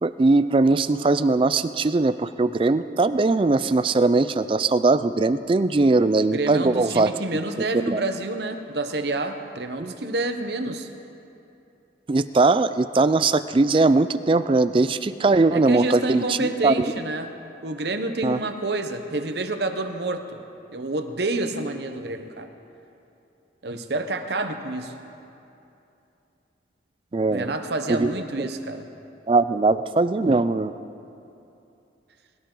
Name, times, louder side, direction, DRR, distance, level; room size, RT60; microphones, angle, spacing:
voice 1, 0.0-7.4 7.9-8.0 9.8-9.9 12.1-16.4 16.6-16.9 18.2-18.4 27.1-27.5 27.9-28.1 28.4-28.5 29.3-30.7, right 3 dB, 30° right, 13 dB, 0.3 m, -20 dB
voice 2, 6.3-10.9 15.5-17.3 17.6-20.4 20.7-22.5 23.6-24.9 27.3-28.9, right 2 dB, 65° right, 7 dB, 0.9 m, -28 dB
22.0 x 13.0 x 3.9 m, 2.8 s
head